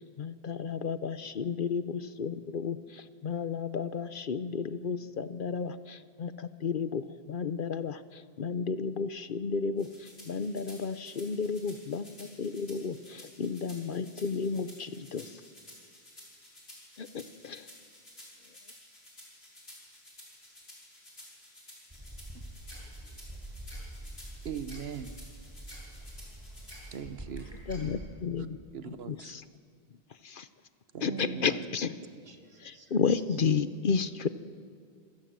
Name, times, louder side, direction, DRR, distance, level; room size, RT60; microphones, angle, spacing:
voice 1, 0.2-15.2 17.0-17.7 27.7-28.6 29.1-29.4 30.2-30.5 31.0-31.9 32.6-34.3, left 5 dB, 60° left, 13 dB, 0.9 m, -32 dB
sound 1, 9.8-27.0, left 1 dB, 80° left, 5.9 m, -53 dB
sound 2, 21.9-28.0, right 1 dB, 25° right, 6.6 m, -45 dB
voice 2, 24.4-25.1 26.9-27.4 28.4-28.5 28.7-29.4 30.9-31.7, right 7 dB, 80° right, 11 dB, 1.2 m, -40 dB
voice 3, 31.1-31.5 31.9-33.4, right 3 dB, 55° right, 5 dB, 2.0 m, -45 dB
27.0 x 16.5 x 7.6 m, 2.1 s
omnidirectional pair, 1.0 m